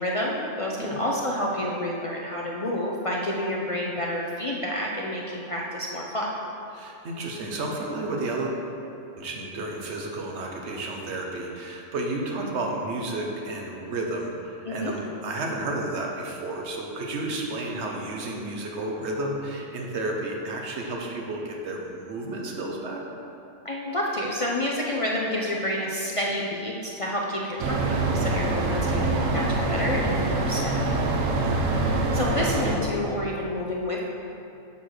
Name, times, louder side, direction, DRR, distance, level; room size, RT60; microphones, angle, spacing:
voice 1, 0.0-6.3 14.6-14.9 23.6-27.8 28.1-30.8 32.1-34.0, left 1 dB, 40° left, -3 dB, 0.5 m, -29 dB
voice 2, 6.7-8.7 9.2-23.0 28.5-28.9 31.4-31.7, right 2 dB, 65° right, 0 dB, 1.2 m, -32 dB
sound 1, 27.6-32.8, right 2 dB, 80° right, 1.1 m, -25 dB
6.9 x 4.6 x 6.4 m, 2.8 s
omnidirectional pair, 1.3 m